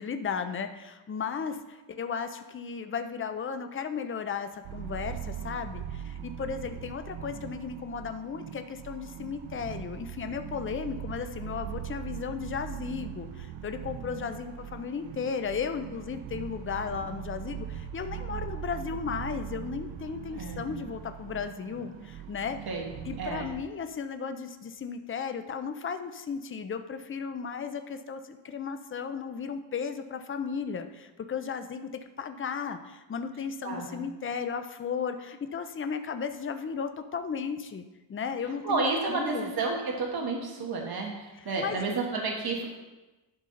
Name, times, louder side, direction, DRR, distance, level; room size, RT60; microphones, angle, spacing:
voice 1, 0.0-22.6 23.1-31.9 32.2-37.8 38.1-39.5 41.6-42.0, left 6 dB, 25° left, 8 dB, 0.5 m, -35 dB
sound 1, 4.7-23.6, right 10 dB, 85° right, 0.8 m, -40 dB
voice 2, 22.7-23.5 33.6-34.0 38.6-42.7, right 3 dB, 50° right, 0 dB, 1.3 m, -31 dB
11.5 x 5.5 x 3.8 m, 1.1 s
wide cardioid pair, 125°, 46 cm